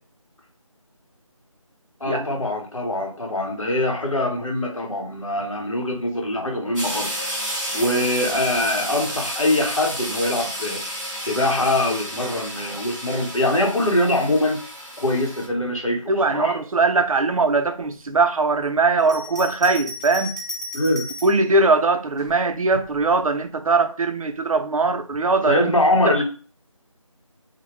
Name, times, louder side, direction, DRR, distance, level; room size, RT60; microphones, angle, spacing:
voice 1, 2.0-7.3 7.7-14.6 15.0-16.5 20.7-21.1 25.5-26.2, left 1 dB, 70° left, 0.9 m, -23 dB
sound 1, 6.7-15.5, equal, ahead, 0.9 m, -31 dB
voice 2, 16.1-20.3 21.2-25.7, right 3 dB, 85° right, 0.5 m, -20 dB
Bell, 19.0-21.4 22.2-23.1, left 1 dB, 30° left, 0.6 m, -35 dB
2.1 x 2.1 x 3.0 m
figure-of-eight pair, 175°, 18 cm